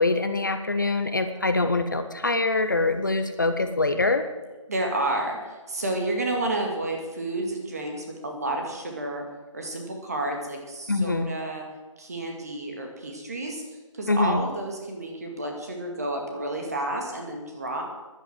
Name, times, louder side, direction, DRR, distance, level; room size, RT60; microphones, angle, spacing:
voice 1, 0.0-4.2 10.9-11.3 14.1-14.4, left 3 dB, 35° left, 8 dB, 0.7 m, -24 dB
voice 2, 4.7-9.2 9.5-11.6 12.0-13.6 13.9-17.8, right 2 dB, 30° right, 2 dB, 2.0 m, -30 dB
11.0 x 10.5 x 7.7 m, 1.2 s
figure-of-eight pair, 180°, 17 cm